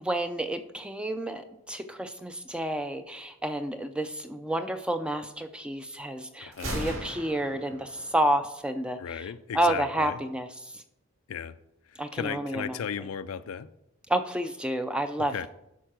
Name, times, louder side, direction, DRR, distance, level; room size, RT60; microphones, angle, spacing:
voice 1, 0.0-9.0 9.5-10.5 12.0-12.8 14.1-15.5, right 1 dB, 5° right, 8 dB, 0.4 m, -30 dB
voice 2, 6.4-6.9 9.0-10.2 11.3-11.6 11.9-13.7 15.2-15.5, left 7 dB, 75° left, 13 dB, 0.4 m, -36 dB
Gunshot gunfire, 6.5-8.5, right 1 dB, 70° right, 4.2 m, -37 dB
11.0 x 4.6 x 6.0 m, 0.86 s
head